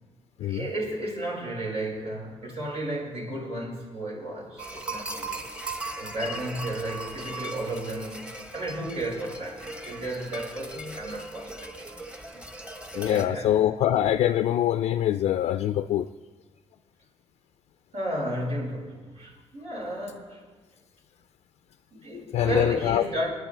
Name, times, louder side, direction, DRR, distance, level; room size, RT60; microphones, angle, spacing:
voice 1, 0.4-5.3 5.9-11.7 12.3-12.4 12.9-13.5 17.9-20.5 22.0-23.3, right 1 dB, 80° right, -3 dB, 5.1 m, -33 dB
sound 1, 4.6-13.3, right 2 dB, 10° right, 1.1 m, -38 dB
voice 2, 12.9-16.1 22.1-23.0, left 11 dB, 80° left, 10 dB, 0.4 m, -24 dB
28.5 x 9.8 x 3.3 m, 1.3 s
cardioid pair, 95°, 11 cm